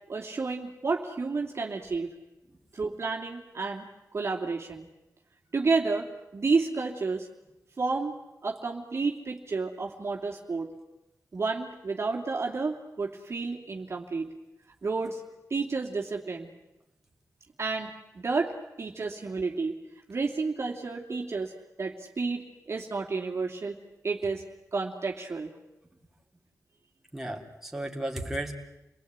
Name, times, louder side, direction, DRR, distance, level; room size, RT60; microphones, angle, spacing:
voice 1, 0.1-2.1 2.7-4.9 5.5-7.3 7.8-8.1 8.4-10.7 11.3-14.3 14.8-15.2 15.5-16.5 17.6-19.8 20.1-21.5 21.8-23.7 24.0-24.4 24.7-25.5, right 4 dB, 45° right, 0 dB, 2.8 m, -31 dB
voice 2, 27.1-28.5, right 1 dB, 5° right, 0 dB, 3.8 m, -34 dB
29.0 x 19.5 x 9.5 m, 0.96 s
wide cardioid pair, 90°, 6 cm